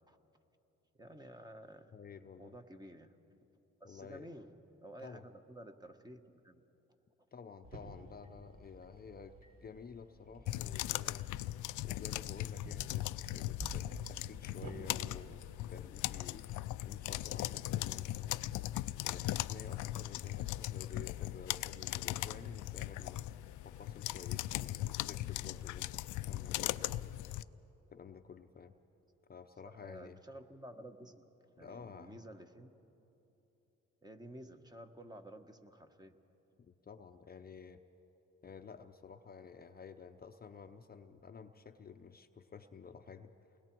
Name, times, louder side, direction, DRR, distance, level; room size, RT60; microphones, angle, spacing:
voice 1, 0.9-1.9 2.4-3.1 3.8-4.5 4.8-6.6 29.6-32.8 34.0-36.2, right 1 dB, 15° right, 6 dB, 1.2 m, -52 dB
voice 2, 1.9-2.5 3.8-4.3 5.0-5.3 7.3-13.0 13.3-18.4 19.0-27.1 27.9-28.8 29.3-30.2 31.6-32.2 36.6-37.8 38.4-43.3, left 6 dB, 30° left, 7 dB, 0.7 m, -52 dB
sound 1, 7.6-14.8, right 1 dB, 60° right, 4.3 m, -51 dB
sound 2, 10.5-27.4, left 15 dB, 80° left, 0.5 m, -39 dB
28.5 x 20.5 x 4.6 m, 2.9 s
cardioid pair, 90°, 30 cm